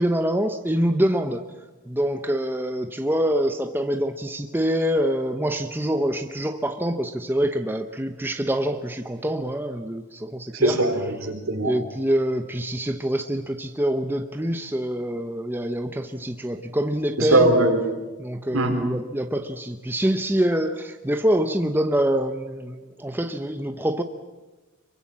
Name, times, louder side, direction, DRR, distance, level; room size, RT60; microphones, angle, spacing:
voice 1, 0.0-1.4 1.9-10.8 11.6-17.5 18.2-24.0, right 1 dB, 10° right, 7 dB, 0.8 m, -25 dB
voice 2, 10.5-11.7 17.2-17.8 18.5-18.8, right 2 dB, 70° right, 4 dB, 4.3 m, -20 dB
25.0 x 23.5 x 7.4 m, 1.2 s
head